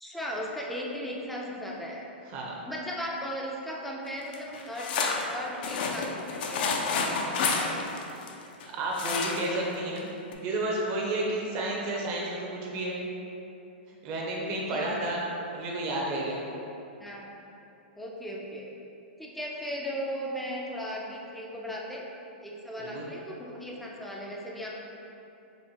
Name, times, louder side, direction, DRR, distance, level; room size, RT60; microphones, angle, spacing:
voice 1, 0.0-2.1 2.6-4.9 5.2-7.3 14.7-15.0 17.0-17.3 18.0-18.7 19.2-22.1 22.4-24.7, equal, ahead, -3 dB, 0.4 m, -37 dB
sound 1, 4.3-8.6 8.9-9.6 10.0-10.1 10.3-10.4, left 4 dB, 55° left, 0.4 m, -29 dB
voice 2, 8.7-10.1 10.4-13.0 14.0-15.2 15.5-16.4 22.8-23.1, right 1 dB, 40° right, -3 dB, 0.8 m, -31 dB
4.4 x 3.1 x 2.8 m, 2.9 s
hypercardioid pair, 135°, 6 cm